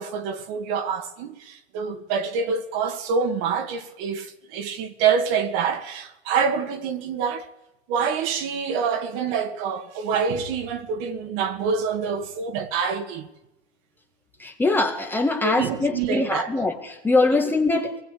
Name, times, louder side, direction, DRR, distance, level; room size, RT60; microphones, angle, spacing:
voice 1, 0.0-7.5 7.9-13.3 15.4-16.5 17.3-17.4, right 6 dB, 35° right, 2.0 m, -26 dB
voice 2, 14.4-18.0, left 2 dB, 5° left, 1.6 m, -22 dB
23.5 x 19.5 x 8.4 m
hypercardioid pair, 155°, 35 cm